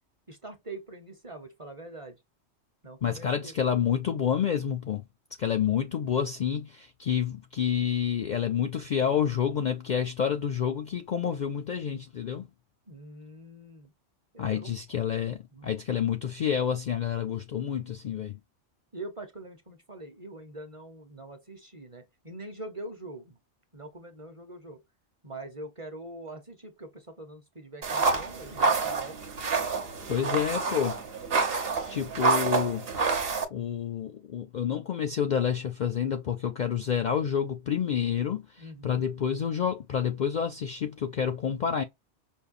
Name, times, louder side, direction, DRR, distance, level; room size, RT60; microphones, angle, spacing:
voice 1, 0.3-2.2 2.8-3.8 12.9-13.9 14.3-14.8 15.5-15.8 18.9-23.4 23.7-24.8 25.2-29.2 38.6-39.0, right 2 dB, 30° right, 0.8 m, -44 dB
voice 2, 3.0-5.0 5.4-12.5 14.4-18.4 30.1-31.0 31.9-32.9 33.5-41.8, left 8 dB, 55° left, 0.5 m, -29 dB
sound 1, 27.8-33.4, right 4 dB, 60° right, 1.1 m, -28 dB
5.3 x 2.2 x 2.5 m
omnidirectional pair, 1.2 m